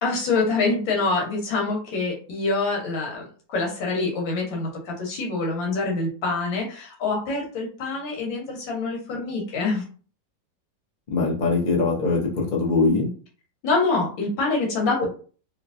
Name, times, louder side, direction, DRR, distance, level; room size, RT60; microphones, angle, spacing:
voice 1, 0.0-9.8 13.6-15.0, left 3 dB, 85° left, -1 dB, 1.8 m, -25 dB
voice 2, 11.1-13.1, left 3 dB, 35° left, -1 dB, 0.7 m, -22 dB
3.1 x 3.0 x 2.5 m, 0.40 s
omnidirectional pair, 2.0 m